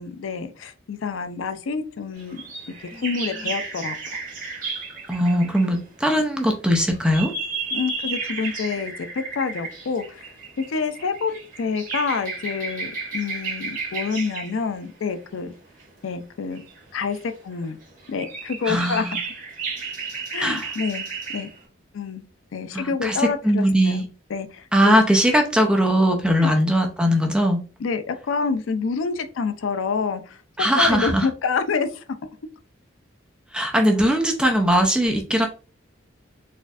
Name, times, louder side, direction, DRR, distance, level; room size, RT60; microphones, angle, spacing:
voice 1, 0.0-2.4 2.8-4.2 7.7-15.5 16.0-16.6 16.9-17.2 17.4-17.8 18.1-19.0 20.3-21.5 21.9-22.2 22.5-24.0 24.3-25.0 26.4-26.5 27.8-30.4 30.8-32.0, left 5 dB, 85° left, 9 dB, 0.4 m, -27 dB
sound 1, 2.2-5.8 6.5-14.7 15.8-15.9 16.5-17.5 17.8-21.6, right 4 dB, 45° right, 1.3 m, -33 dB
voice 2, 5.1-7.3 18.7-19.2 20.4-20.7 22.7-24.1 24.7-27.6 30.6-31.3 33.5-35.5, equal, 5° right, 2 dB, 0.5 m, -20 dB
4.2 x 2.5 x 2.4 m, 0.35 s
head